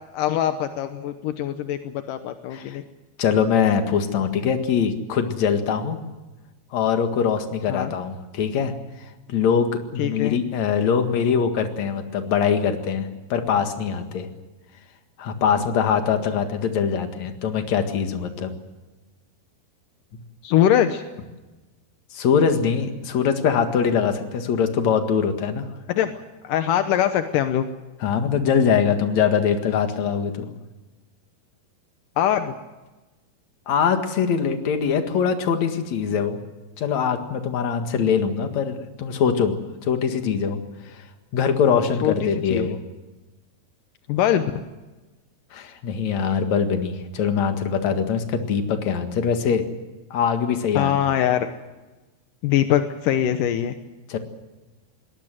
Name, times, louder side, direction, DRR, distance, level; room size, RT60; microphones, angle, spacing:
voice 1, 0.1-2.8 7.7-7.9 10.0-10.4 20.4-21.0 25.9-26.1 26.4-27.7 32.2-32.6 42.0-42.7 44.1-44.5 50.8-51.5 52.4-53.7, left 10 dB, 75° left, 8 dB, 2.0 m, -22 dB
voice 2, 3.2-6.0 6.7-8.7 9.3-14.3 15.2-18.5 22.1-25.7 28.0-30.5 33.7-36.4 36.8-40.6 41.3-42.8 45.5-49.6 50.1-50.9 54.1-54.2, left 7 dB, 50° left, 6 dB, 2.5 m, -22 dB
23.0 x 19.0 x 7.7 m, 1.1 s
omnidirectional pair, 5.0 m